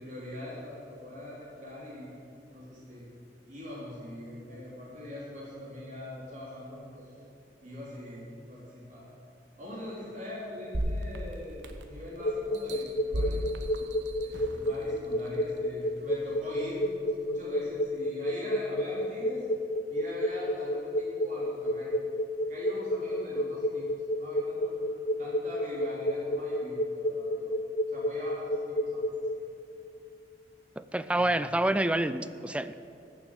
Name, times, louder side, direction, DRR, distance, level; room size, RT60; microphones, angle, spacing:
voice 1, 0.0-2.1 2.5-3.0 3.5-7.1 7.6-9.1 9.6-13.4 14.2-19.5 19.9-21.9 22.5-23.9 24.2-27.5 27.9-29.0 29.3-29.4 31.1-31.3, left 1 dB, 45° right, -6 dB, 3.7 m, -42 dB
sound 1, 10.7-12.0 12.5-14.7 15.3-15.4, equal, 70° right, 1.2 m, -34 dB
sound 2, 12.1-29.4, equal, 50° left, 0.7 m, -30 dB
voice 2, 30.8-32.8, right 1 dB, 5° right, 13 dB, 0.4 m, -28 dB
15.0 x 7.3 x 9.1 m, 2.7 s
head